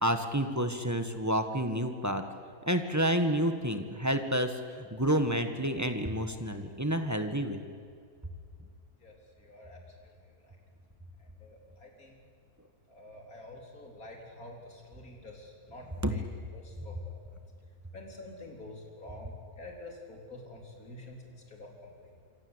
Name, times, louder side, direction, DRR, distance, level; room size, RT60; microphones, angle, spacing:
voice 1, 0.0-2.2 2.7-7.6 16.0-16.1, equal, 10° right, 6 dB, 1.6 m, -29 dB
voice 2, 9.0-10.6 11.2-12.2 12.9-16.2 16.5-17.2 17.9-22.2, left 2 dB, 70° left, 0 dB, 4.5 m, -48 dB
26.5 x 26.5 x 8.2 m, 2.3 s
omnidirectional pair, 1.6 m